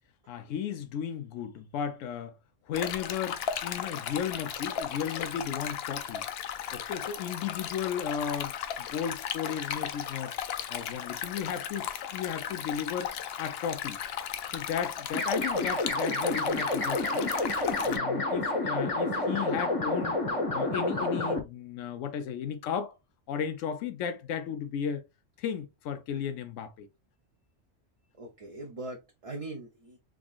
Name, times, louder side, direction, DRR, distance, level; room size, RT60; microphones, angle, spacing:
voice 1, 0.3-2.4 2.7-6.2 6.7-10.4 10.7-14.0 14.5-17.4 17.8-20.2 20.5-22.9 23.3-25.1 25.4-26.9, left 8 dB, 90° left, 0.9 m, -35 dB
Stream, 2.7-18.0, left 9 dB, 65° left, 0.7 m, -36 dB
sound 1, 15.1-21.4, left 2 dB, 30° left, 0.8 m, -29 dB
voice 2, 28.2-30.0, right 2 dB, 35° right, 0.6 m, -41 dB
3.7 x 3.5 x 2.3 m
omnidirectional pair, 1.3 m